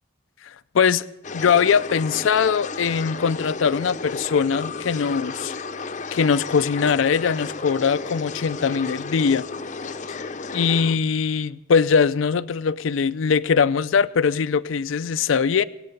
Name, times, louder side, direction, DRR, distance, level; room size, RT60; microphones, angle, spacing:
sound 1, 1.2-11.0, left 4 dB, 40° left, 0.6 m, -33 dB
voice 1, 1.3-5.5 6.1-9.5 10.5-15.6, left 6 dB, 85° left, 15 dB, 0.4 m, -21 dB
23.5 x 8.5 x 5.3 m, 0.95 s
head